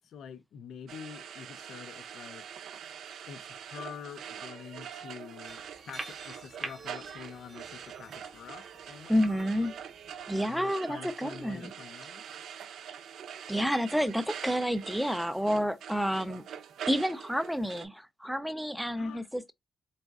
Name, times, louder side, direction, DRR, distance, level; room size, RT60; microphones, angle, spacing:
voice 1, 0.0-2.4 3.3-9.8 10.5-12.2 18.9-19.3, left 7 dB, 70° left, 0.5 m, -46 dB
sound 1, 0.9-17.9, right 8 dB, 70° right, 0.5 m, -44 dB
sound 2, 5.5-10.5, right 2 dB, 20° right, 0.9 m, -47 dB
voice 2, 9.1-9.7 10.3-11.7 13.5-16.4 16.9-19.5, equal, ahead, 0.4 m, -29 dB
4.0 x 3.6 x 2.3 m
wide cardioid pair, 165°, 0 cm